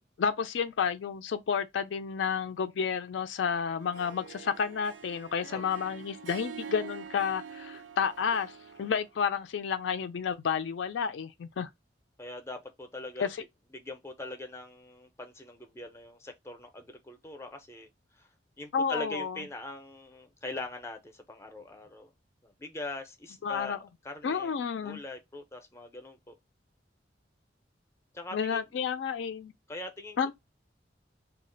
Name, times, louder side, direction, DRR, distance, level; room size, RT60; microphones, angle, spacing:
voice 1, 0.0-8.5 8.8-11.7 13.2-13.4 18.7-19.4 23.4-23.8 24.2-25.0 28.3-29.5 30.2-30.3, left 6 dB, 75° left, 0.4 m, -31 dB
Harp, 3.8-9.1, right 7 dB, 75° right, 0.4 m, -45 dB
voice 2, 12.2-13.5 13.7-17.9 18.2-18.3 18.6-22.1 22.4-23.8 24.0-24.5 24.8-26.3 28.1-28.6 29.7-30.3, left 2 dB, 15° left, 0.5 m, -42 dB
2.3 x 2.1 x 3.8 m
head